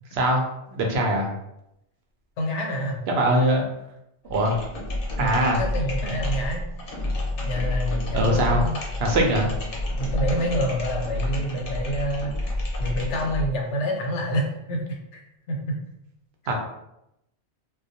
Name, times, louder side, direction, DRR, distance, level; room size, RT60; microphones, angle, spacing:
voice 1, 0.1-0.4 0.7-1.3 3.1-3.7 4.3-4.6 5.2-5.6 6.0-6.1 8.1-8.6 9.0-9.5 16.5-16.6, right 1 dB, 70° right, 1 dB, 0.8 m, -21 dB
voice 2, 2.4-3.0 5.2-6.6 7.4-8.8 10.0-12.5 12.8-15.2 15.5-15.6, equal, 90° left, 0 dB, 0.9 m, -28 dB
sound 1, 4.3-13.6, left 1 dB, 60° left, 0.7 m, -29 dB
2.2 x 2.2 x 2.7 m, 0.83 s
omnidirectional pair, 1.1 m